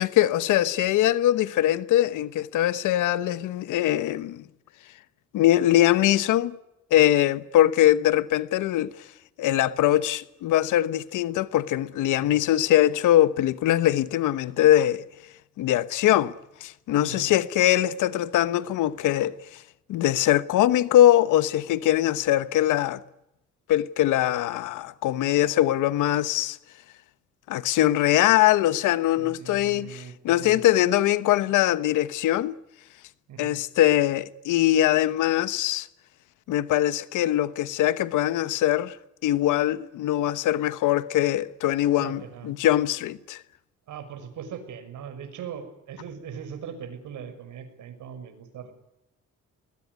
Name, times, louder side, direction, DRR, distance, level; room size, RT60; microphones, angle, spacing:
voice 1, 0.0-4.4 5.3-6.5 6.9-8.9 9.4-15.0 15.6-16.3 16.6-19.3 19.9-23.0 23.7-26.6 27.5-32.6 33.4-35.9 36.5-38.9 39.2-43.4, left 13 dB, 85° left, 1.1 m, -22 dB
voice 2, 17.0-17.3 29.2-30.6 33.3-33.6 42.0-42.5 43.9-48.7, right 7 dB, 80° right, 6.1 m, -40 dB
21.5 x 21.0 x 9.5 m
cardioid pair, 90°, 30 cm